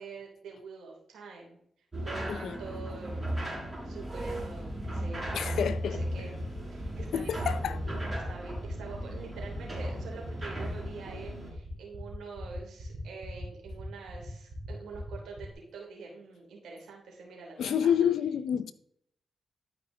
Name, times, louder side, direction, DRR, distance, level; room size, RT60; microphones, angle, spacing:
voice 1, 0.0-1.6 2.0-3.2 3.8-6.4 6.7-7.8 8.1-17.9, right 4 dB, 80° right, 3.0 m, -45 dB
sound 1, 1.9-11.5, right 1 dB, 25° right, 4.1 m, -36 dB
sound 2, 4.2-15.5, right 3 dB, 50° right, 3.4 m, -45 dB
voice 2, 5.3-6.0 7.1-8.0 17.6-18.7, left 8 dB, 80° left, 0.5 m, -29 dB
12.0 x 5.0 x 3.8 m
supercardioid pair, 55°, 0 cm